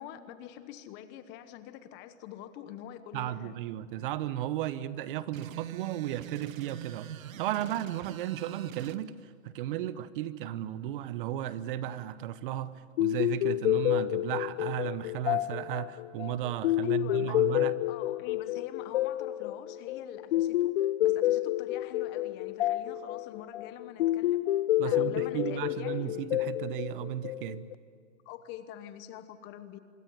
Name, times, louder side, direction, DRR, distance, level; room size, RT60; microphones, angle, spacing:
voice 1, 0.0-3.5 16.8-24.6 24.8-26.2 28.2-29.8, left 11 dB, 25° left, 11 dB, 1.1 m, -45 dB
voice 2, 3.1-7.1 7.4-12.7 13.0-17.7 24.8-27.7, right 12 dB, 40° right, 15 dB, 1.0 m, -34 dB
sound 1, 5.3-9.0, right 12 dB, 75° right, 1.1 m, -43 dB
sound 2, 13.0-27.7, left 14 dB, 45° left, 0.9 m, -29 dB
25.5 x 23.5 x 9.6 m, 2.1 s
hypercardioid pair, 145°, 41 cm